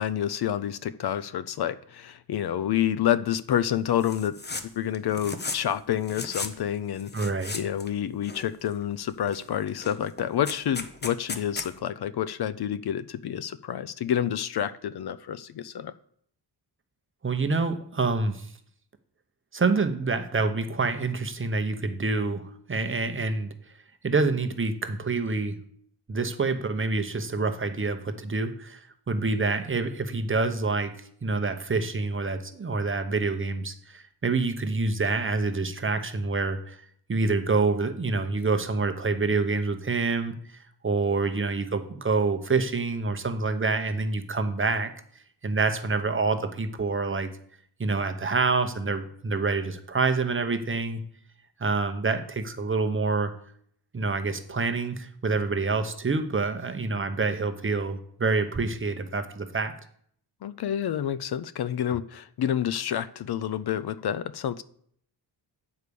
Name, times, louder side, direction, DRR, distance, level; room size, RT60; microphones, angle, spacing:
voice 1, 0.0-7.1 7.5-15.9 60.4-64.6, left 10 dB, 60° left, 0.5 m, -28 dB
sound 1, 4.0-4.7 4.9-5.7 6.0-6.5 7.0-7.9 8.2-8.8 9.3-9.4 9.7-11.7, left 3 dB, 25° left, 0.7 m, -35 dB
voice 2, 7.1-7.6 17.2-18.5 19.5-22.4 22.7-23.5 24.0-25.6 26.1-30.9 31.2-36.8 37.1-40.4 40.8-44.9 45.4-47.3 47.8-51.0 51.6-53.3 53.9-59.7, right 3 dB, 30° right, 0.8 m, -27 dB
8.4 x 4.8 x 6.8 m
wide cardioid pair, 125°, 43 cm